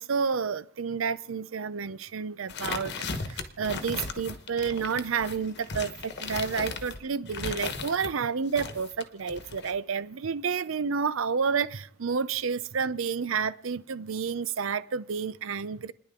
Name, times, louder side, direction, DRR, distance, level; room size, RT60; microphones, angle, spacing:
voice 1, 0.0-3.0 3.2-15.9, right 6 dB, 75° right, 0.6 m, -30 dB
sound 1, 2.5-8.1 8.5-9.7, left 4 dB, 55° left, 1.2 m, -36 dB
30.0 x 10.5 x 3.8 m
head